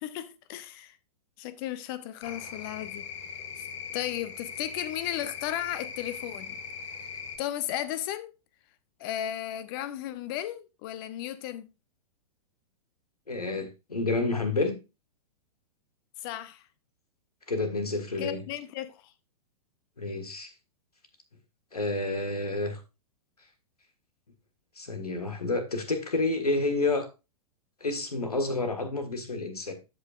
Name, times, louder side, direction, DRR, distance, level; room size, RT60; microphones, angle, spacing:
voice 1, 0.0-1.0 1.4-3.0 3.6-3.7 3.9-6.6 6.9-7.1 7.4-8.3 9.0-11.7 16.2-16.6 18.2-19.1, left 12 dB, 35° left, 0.8 m, -35 dB
sound 1, 2.2-7.4, left 6 dB, 55° left, 1.4 m, -40 dB
voice 2, 13.3-14.8 17.5-18.4 20.0-20.5 21.7-22.8 24.8-27.1 27.8-29.7, left 2 dB, 80° left, 1.6 m, -29 dB
12.5 x 5.4 x 2.5 m
figure-of-eight pair, 105°, 19 cm